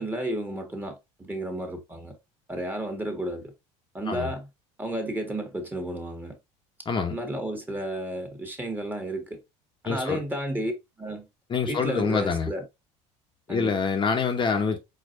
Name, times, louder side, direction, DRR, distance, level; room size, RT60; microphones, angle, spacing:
voice 1, 0.0-2.2 2.5-3.5 3.9-4.5 4.8-6.4 7.1-9.4 9.8-11.3 11.7-12.6 13.5-13.7, right 1 dB, 15° right, 1.5 m, -32 dB
voice 2, 9.8-10.2 11.5-12.5 13.5-14.8, left 5 dB, 35° left, 1.0 m, -26 dB
4.6 x 4.0 x 2.6 m
supercardioid pair, 100°, 15 cm